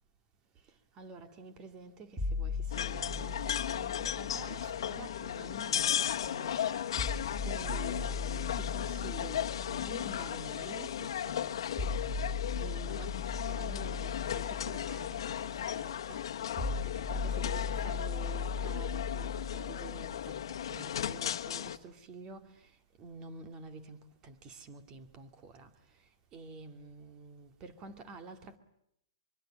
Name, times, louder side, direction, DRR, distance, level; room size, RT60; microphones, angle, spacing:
voice 1, 1.0-6.8 7.4-11.6 12.5-16.2 16.8-22.5 23.0-25.7 26.3-28.6, right 4 dB, 25° right, 2.4 m, -49 dB
sound 1, 2.2-6.2 7.0-21.0, left 4 dB, 5° right, 4.6 m, -39 dB
sound 2, 2.7-21.8, left 10 dB, 70° left, 1.4 m, -36 dB
25.0 x 23.5 x 8.7 m
hypercardioid pair, 145°, 3 cm